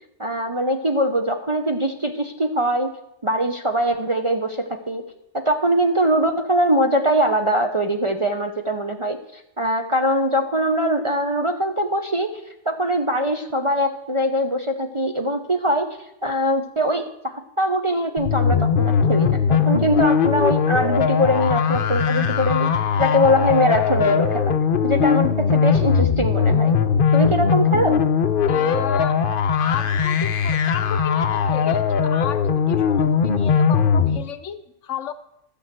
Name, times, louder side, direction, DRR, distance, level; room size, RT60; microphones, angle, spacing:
voice 1, 0.2-3.0 3.2-5.0 5.3-12.4 12.7-22.7 23.0-24.6 24.8-26.8 27.1-28.0, equal, 30° right, 3 dB, 0.7 m, -22 dB
sound 1, 18.2-34.2, left 6 dB, 50° left, 0.8 m, -20 dB
voice 2, 28.5-29.2 29.6-35.1, left 9 dB, 70° left, 13 dB, 1.0 m, -33 dB
12.0 x 7.0 x 7.5 m, 0.81 s
omnidirectional pair, 1.4 m